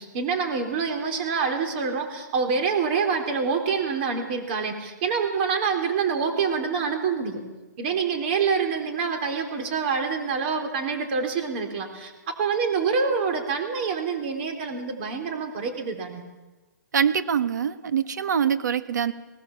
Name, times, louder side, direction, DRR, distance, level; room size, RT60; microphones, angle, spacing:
voice 1, 0.0-7.4 7.8-16.2, right 5 dB, 35° right, 4 dB, 3.9 m, -26 dB
voice 2, 16.9-19.1, right 7 dB, 65° right, 10 dB, 1.6 m, -24 dB
19.0 x 19.0 x 7.3 m, 1.2 s
hypercardioid pair, 160°, 10 cm